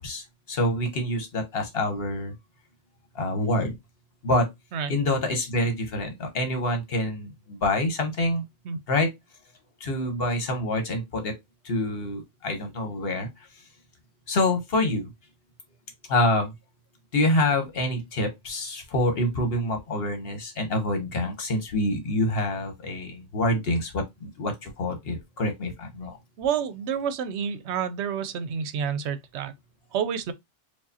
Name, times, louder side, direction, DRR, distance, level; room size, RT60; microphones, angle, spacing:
voice 1, 0.0-2.3 3.1-3.7 4.2-4.5 4.9-8.4 8.9-9.1 9.8-11.3 11.6-13.3 14.3-15.1 16.1-16.5 17.1-26.2, left 1 dB, 55° left, 1.2 m, -26 dB
voice 2, 26.4-29.5 29.9-30.3, right 7 dB, 70° right, 0.8 m, -29 dB
4.7 x 2.4 x 2.7 m
omnidirectional pair, 1.2 m